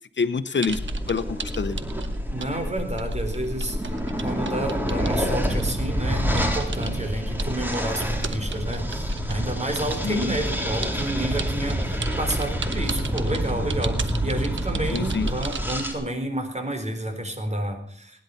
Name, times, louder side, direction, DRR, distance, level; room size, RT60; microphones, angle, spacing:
voice 1, 0.2-0.8 1.1-1.8 10.0-10.3 14.9-15.3, left 5 dB, 75° left, 12 dB, 1.0 m, -26 dB
sound 1, 0.6-2.5 2.8-5.8 6.4-6.9 7.4-9.4 9.8-15.9, right 5 dB, 85° right, 1.2 m, -36 dB
sound 2, 0.7-15.9, equal, 10° right, 3.7 m, -27 dB
voice 2, 2.3-3.9 4.2-18.2, right 1 dB, 35° right, 6 dB, 4.1 m, -30 dB
20.0 x 10.5 x 5.7 m, 0.62 s
cardioid pair, 50°, 19 cm